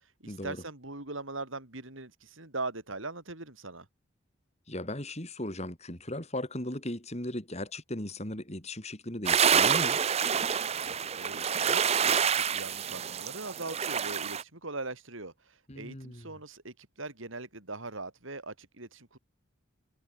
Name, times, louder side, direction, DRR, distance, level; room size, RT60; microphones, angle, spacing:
voice 1, 0.2-3.9 10.8-19.2, right 3 dB, 70° right, 4.5 m, -41 dB
voice 2, 4.7-10.0 15.7-16.3, left 1 dB, 30° left, 4.2 m, -37 dB
sound 1, 9.3-14.4, right 7 dB, 30° right, 0.6 m, -27 dB
head